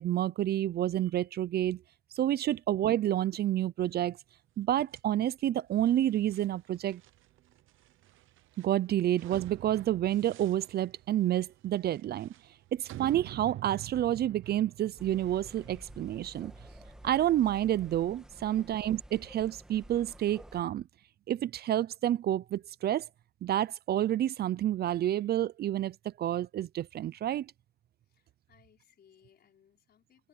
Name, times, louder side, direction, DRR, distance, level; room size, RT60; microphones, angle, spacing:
voice 1, 0.0-1.8 2.1-4.2 4.6-7.0 8.6-12.3 12.7-16.5 17.0-20.9 21.3-23.1 23.4-27.5, right 12 dB, 55° right, 0.5 m, -29 dB
sound 1, 4.8-18.0, right 14 dB, 85° right, 0.9 m, -49 dB
sound 2, 15.0-20.6, right 1 dB, 5° right, 2.2 m, -52 dB
voice 2, 28.1-30.3, left 8 dB, 55° left, 4.8 m, -63 dB
cardioid pair, 130°, 20 cm